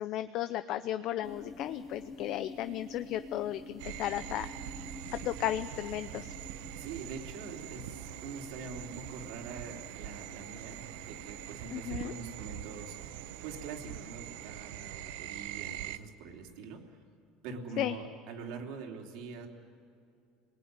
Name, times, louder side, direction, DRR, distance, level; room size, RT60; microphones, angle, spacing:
voice 1, 0.0-4.5 5.1-6.3 11.7-12.1 17.8-18.0, left 12 dB, 45° left, 11 dB, 0.6 m, -34 dB
sound 1, 1.2-14.6, left 3 dB, 20° left, 1.1 m, -50 dB
sound 2, 3.8-16.0, right 13 dB, 85° right, 0.9 m, -43 dB
voice 2, 6.7-16.8 17.4-19.5, right 4 dB, 65° right, 1 dB, 3.4 m, -44 dB
29.5 x 20.0 x 9.7 m, 2.4 s
cardioid pair, 165°, 0 cm